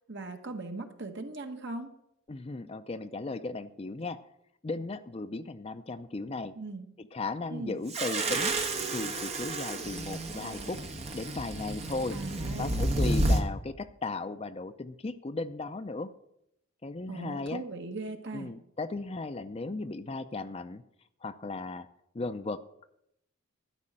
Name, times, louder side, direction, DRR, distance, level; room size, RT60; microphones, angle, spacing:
voice 1, 0.0-1.9 6.5-6.9 7.5-7.8 12.1-12.8 17.1-18.5, right 3 dB, 55° right, 5 dB, 1.3 m, -39 dB
voice 2, 2.3-4.2 4.6-6.5 7.0-8.6 8.9-10.8 11.1-12.2 12.6-16.1 16.8-17.6 18.3-20.8 21.2-21.9 22.1-22.6, left 3 dB, 30° left, 11 dB, 0.4 m, -36 dB
sound 1, 7.9-13.4, right 1 dB, 30° right, 1.1 m, -30 dB
12.5 x 5.4 x 8.7 m, 0.78 s
head